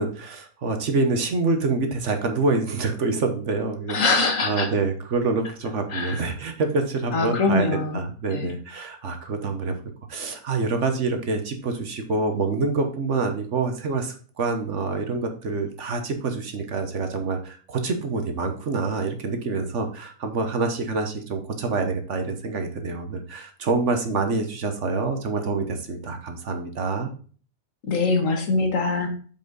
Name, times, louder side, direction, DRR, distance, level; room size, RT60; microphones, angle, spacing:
voice 1, 0.0-9.7 10.1-27.1, right 3 dB, 60° right, 6 dB, 1.3 m, -26 dB
voice 2, 3.9-4.7 5.9-6.2 7.1-8.0 8.3-8.5 27.8-29.1, left 3 dB, 65° left, 4 dB, 1.7 m, -23 dB
7.3 x 5.3 x 3.9 m, 0.42 s
omnidirectional pair, 1.5 m